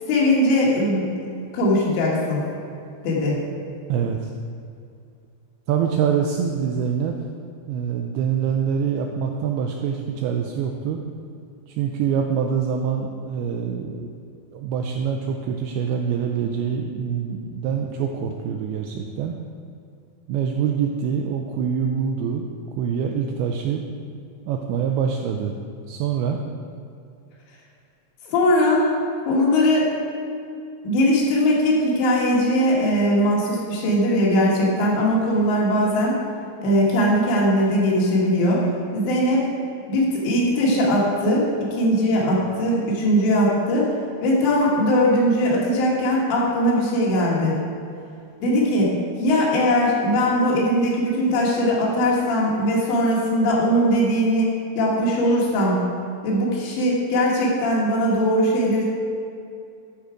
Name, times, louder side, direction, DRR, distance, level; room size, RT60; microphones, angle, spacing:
voice 1, 0.1-1.1 1.5-2.4 3.0-3.4 28.2-28.9 29.3-29.9 30.8-36.2 36.6-38.6 38.9-39.5 39.9-43.9 44.2-47.6 48.4-55.8 56.2-58.8, equal, 90° left, -4 dB, 4.0 m, -20 dB
voice 2, 3.9-4.3 5.7-7.3 7.7-11.0 11.7-14.1 14.5-19.4 20.3-23.8 24.5-25.6 25.9-26.4, right 7 dB, 85° right, 2 dB, 2.2 m, -25 dB
11.5 x 4.8 x 5.1 m, 2.5 s
omnidirectional pair, 5.0 m